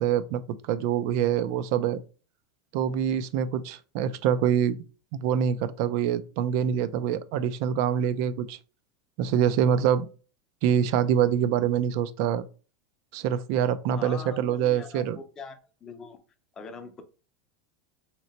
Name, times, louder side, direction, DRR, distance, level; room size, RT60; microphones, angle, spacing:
voice 1, 0.0-2.0 2.7-4.8 5.1-8.6 9.2-10.1 10.6-12.4 13.1-15.2, right 9 dB, 60° right, 0.3 m, -25 dB
voice 2, 13.9-15.0 15.4-16.2 16.6-17.0, left 5 dB, 20° left, 0.5 m, -42 dB
2.9 x 2.1 x 4.0 m
supercardioid pair, 140°, 2 cm